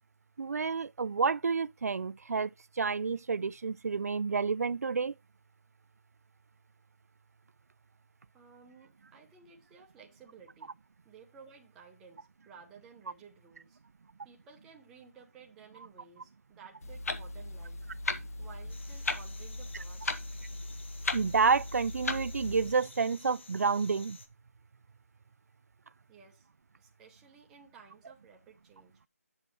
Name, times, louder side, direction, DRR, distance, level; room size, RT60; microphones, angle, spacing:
voice 1, 0.4-5.1 21.1-24.2, right 5 dB, 70° right, 0.4 m, -29 dB
voice 2, 8.3-10.7 11.0-13.8 14.2-17.9 18.4-20.1 26.1-26.5 26.8-29.0, right 6 dB, 5° right, 0.7 m, -55 dB
Clock, 16.8-22.7, left 2 dB, 65° left, 1.4 m, -37 dB
sound 1, 18.7-24.3, left 3 dB, 45° left, 1.3 m, -53 dB
9.1 x 7.0 x 3.1 m
hypercardioid pair, 175°, 9 cm